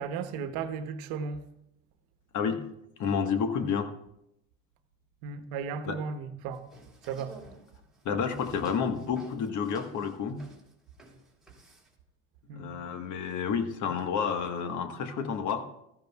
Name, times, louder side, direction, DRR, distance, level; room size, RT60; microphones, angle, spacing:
voice 1, 0.0-1.4 5.2-6.6 7.1-7.4 12.5-12.7, right 6 dB, 65° right, 1.1 m, -35 dB
voice 2, 3.0-3.9 5.8-6.0 8.0-10.4 12.6-15.6, left 6 dB, 50° left, 1.4 m, -30 dB
sound 1, 6.5-11.9, right 2 dB, ahead, 3.3 m, -52 dB
15.5 x 13.5 x 2.3 m
hypercardioid pair, 85°, 39 cm